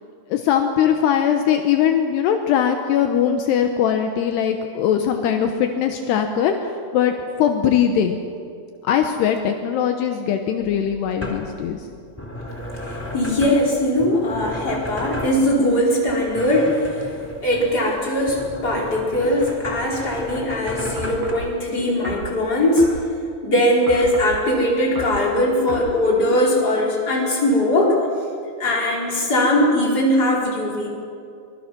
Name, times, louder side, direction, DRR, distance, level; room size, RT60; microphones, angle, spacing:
voice 1, 0.3-8.2 8.8-11.8, left 8 dB, 75° left, 5 dB, 3.0 m, -20 dB
sound 1, 10.6-21.3, left 1 dB, 5° left, 2.8 m, -34 dB
voice 2, 13.1-17.0 17.4-22.9 23.4-27.9 28.6-30.9, left 1 dB, 20° left, -3 dB, 4.9 m, -20 dB
sound 2, 21.0-21.5 22.1-22.3 22.8-23.0 23.9-24.4 25.0-25.2 25.7-25.9, right 3 dB, 70° right, 7.3 m, -32 dB
23.5 x 23.0 x 6.1 m, 2.5 s
omnidirectional pair, 4.9 m